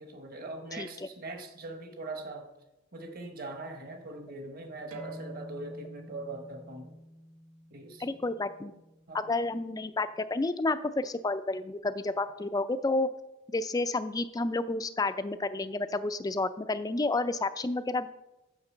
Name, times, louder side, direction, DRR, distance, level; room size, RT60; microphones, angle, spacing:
voice 1, 0.0-2.5 2.9-6.9 7.7-8.1 9.1-9.3, right 2 dB, 40° right, 6 dB, 1.1 m, -41 dB
voice 2, 0.7-1.1 8.0-8.7 9.1-13.1 13.5-18.1, left 2 dB, 15° left, 12 dB, 0.3 m, -30 dB
sound 1, 4.9-10.1, equal, 75° right, 1.3 m, -49 dB
6.6 x 5.8 x 7.1 m, 0.98 s
head